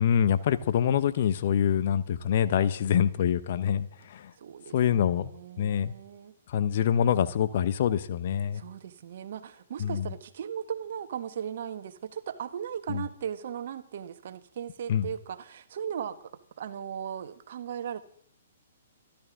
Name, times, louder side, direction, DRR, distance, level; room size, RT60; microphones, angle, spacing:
voice 1, 0.0-4.3 4.7-5.3 5.6-5.9 6.5-8.6 9.8-10.1 12.9-13.0 14.9-15.1, left 9 dB, 50° left, 13 dB, 1.0 m, -25 dB
voice 2, 4.4-6.3 8.5-16.3 16.6-18.0, right 8 dB, 55° right, 11 dB, 1.3 m, -37 dB
26.5 x 12.0 x 3.7 m, 0.64 s
figure-of-eight pair, 120°, 0 cm